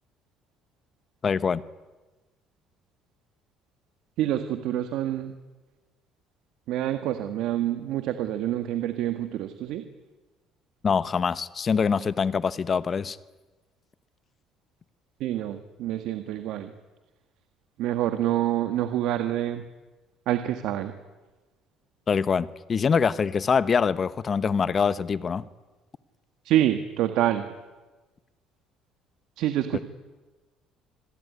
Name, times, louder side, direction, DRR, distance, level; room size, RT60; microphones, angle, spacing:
voice 1, 1.2-1.6 10.8-13.2 22.1-25.5 29.7-29.8, left 6 dB, 35° left, 1.1 m, -24 dB
voice 2, 4.2-5.3 6.7-9.8 15.2-16.7 17.8-19.6 20.3-20.9 26.4-27.4 29.4-29.8, right 12 dB, 75° right, 1.7 m, -27 dB
27.5 x 21.0 x 9.7 m
cardioid pair, 115°, 0 cm